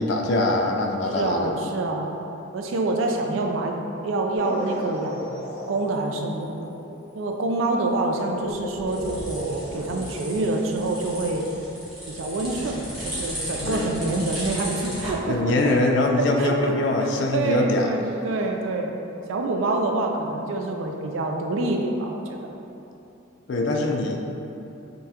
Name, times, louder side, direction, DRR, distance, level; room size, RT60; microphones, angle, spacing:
voice 1, 0.0-1.6 13.6-13.9 15.3-17.9 23.5-24.2, left 2 dB, 60° left, 2 dB, 0.3 m, -23 dB
voice 2, 1.1-2.1 2.5-5.3 5.7-6.7 7.1-11.5 12.1-15.7 16.2-18.9 19.3-22.5, right 2 dB, 75° right, 3 dB, 0.4 m, -26 dB
sound 1, 4.3-13.4 13.8-14.6 14.9-17.0 17.7-17.8 18.0-18.4, left 1 dB, 30° left, 0.9 m, -39 dB
sound 2, 8.3-15.1, equal, ahead, 1.0 m, -35 dB
5.2 x 2.3 x 2.8 m, 2.9 s
head